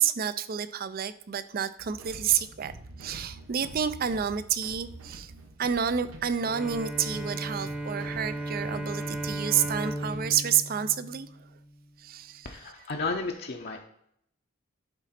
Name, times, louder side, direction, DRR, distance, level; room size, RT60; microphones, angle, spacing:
voice 1, 0.0-2.7 3.0-5.3 5.6-11.3 12.0-12.5, right 8 dB, 45° right, 14 dB, 0.4 m, -29 dB
sound 1, 1.8-10.2, right 1 dB, 85° right, 1.2 m, -47 dB
Bowed string instrument, 6.4-11.8, right 1 dB, 5° right, 0.8 m, -36 dB
voice 2, 12.4-13.8, left 3 dB, 50° left, 1 dB, 0.7 m, -33 dB
11.5 x 4.0 x 4.2 m, 0.71 s
head